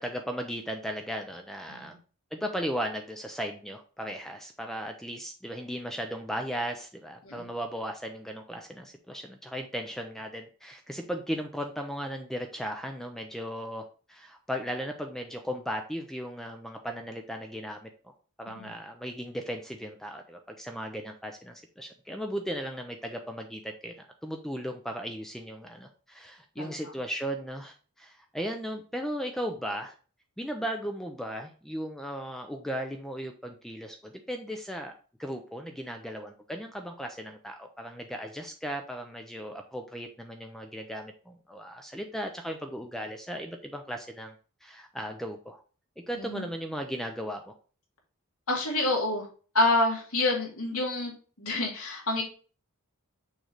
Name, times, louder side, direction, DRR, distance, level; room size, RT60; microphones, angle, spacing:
voice 1, 0.0-2.0 2.3-30.0 30.4-34.9 35.2-44.4 44.6-45.6 46.0-47.5, equal, ahead, 4 dB, 0.4 m, -36 dB
voice 2, 48.5-49.3 49.5-52.2, left 2 dB, 75° left, -1 dB, 2.2 m, -28 dB
6.4 x 3.2 x 4.9 m, 0.38 s
head